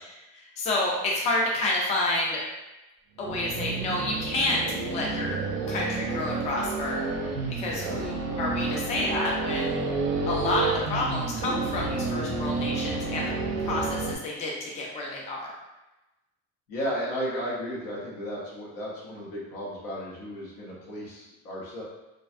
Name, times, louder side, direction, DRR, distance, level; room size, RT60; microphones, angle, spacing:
voice 1, 0.3-2.4 3.2-5.4 5.7-7.0 7.5-9.8 10.3-13.3 13.6-15.5, left 2 dB, 20° left, -3 dB, 0.3 m, -29 dB
sound 1, 3.2-14.2, right 3 dB, 50° right, 0.5 m, -30 dB
voice 2, 7.7-8.0 13.6-13.8 16.7-21.8, equal, 75° left, -5 dB, 1.0 m, -34 dB
2.4 x 2.1 x 2.5 m, 1.0 s
cardioid pair, 140°, 33 cm